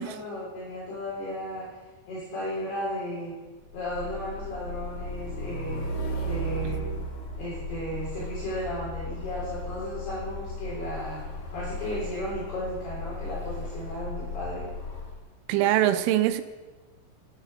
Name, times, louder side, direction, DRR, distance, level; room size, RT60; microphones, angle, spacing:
voice 1, 0.0-1.7 2.1-3.3 3.7-5.8 6.2-6.8 7.4-11.2 11.5-14.7 15.5-16.1, equal, 55° left, -8 dB, 5.1 m, -35 dB
Truck, 3.8-15.2, left 1 dB, 80° left, 1.4 m, -35 dB
voice 2, 15.5-16.4, right 13 dB, 85° right, 10 dB, 3.2 m, -23 dB
11.0 x 9.1 x 6.1 m, 1.2 s
omnidirectional pair, 5.8 m